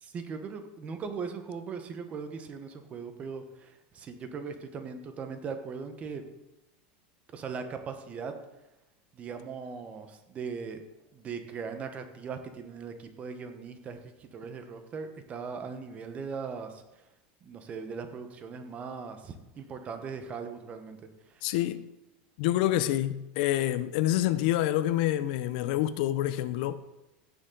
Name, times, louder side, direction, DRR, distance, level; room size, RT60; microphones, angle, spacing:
voice 1, 0.0-6.2 7.3-8.3 9.1-10.8 11.1-16.8 17.4-21.0 21.3-21.4, right 5 dB, 25° right, 1.1 m, -39 dB
voice 2, 21.4-21.9 22.4-26.8, left 13 dB, 60° left, 0.6 m, -27 dB
16.5 x 6.8 x 3.9 m
supercardioid pair, 155°, 5 cm